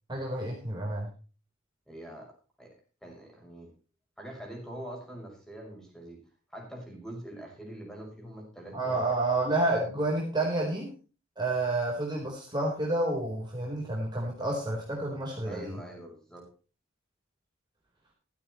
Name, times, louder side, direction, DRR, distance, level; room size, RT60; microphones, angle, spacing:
voice 1, 0.1-1.1 8.7-10.9 11.4-15.7, right 2 dB, 20° right, -2 dB, 4.1 m, -29 dB
voice 2, 1.9-2.8 3.0-3.7 4.2-6.2 6.5-9.1 15.4-16.5, right 1 dB, 5° left, 0 dB, 6.0 m, -44 dB
15.5 x 13.5 x 3.1 m, 0.35 s
head